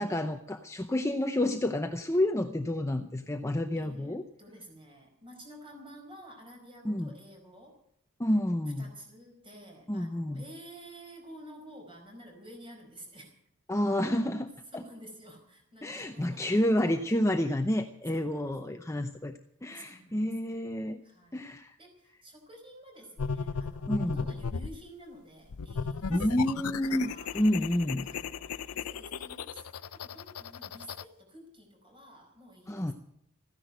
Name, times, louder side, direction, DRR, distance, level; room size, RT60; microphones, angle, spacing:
voice 1, 0.0-4.2 6.8-7.1 8.2-8.9 9.9-10.4 13.7-14.8 15.8-21.0 21.3-21.8 23.9-24.3 26.1-28.1 32.7-32.9, left 1 dB, 15° left, 5 dB, 0.7 m, -29 dB
voice 2, 3.7-7.8 8.8-13.3 14.7-16.7 17.0-17.1 18.1-18.5 19.7-20.5 21.0-21.5 21.8-27.4 28.0-32.9, right 1 dB, 25° right, 2 dB, 4.9 m, -51 dB
sound 1, 23.2-24.8 25.5-31.0, left 5 dB, 85° left, 0.6 m, -36 dB
14.5 x 10.5 x 9.1 m, 0.73 s
head